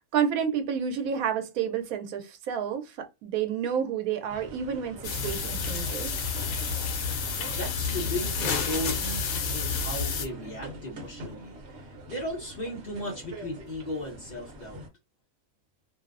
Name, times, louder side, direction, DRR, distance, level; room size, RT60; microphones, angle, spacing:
voice 1, 0.1-6.2, right 8 dB, 90° right, 1.0 m, -30 dB
sound 1, 4.3-14.9, right 1 dB, 60° right, 1.0 m, -42 dB
sound 2, 5.0-10.3, left 5 dB, 85° left, 1.0 m, -30 dB
voice 2, 7.5-11.6 12.1-14.8, left 1 dB, 45° left, 0.6 m, -36 dB
2.6 x 2.0 x 2.4 m
omnidirectional pair, 1.4 m